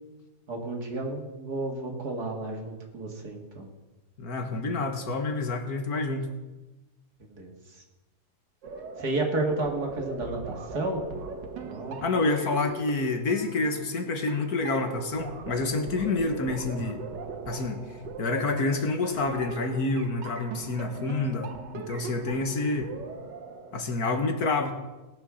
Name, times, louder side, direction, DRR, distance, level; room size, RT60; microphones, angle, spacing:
voice 1, 0.5-3.7 7.2-7.5 9.0-11.0 11.6-12.0, right 2 dB, 65° right, 2 dB, 2.6 m, -32 dB
voice 2, 4.2-6.3 12.0-17.0 17.5-22.9 23.7-24.7, left 3 dB, 60° left, 6 dB, 1.7 m, -28 dB
sound 1, 8.6-23.8, right 4 dB, 90° right, 1.8 m, -40 dB
19.0 x 7.3 x 6.3 m, 1.1 s
omnidirectional pair, 1.9 m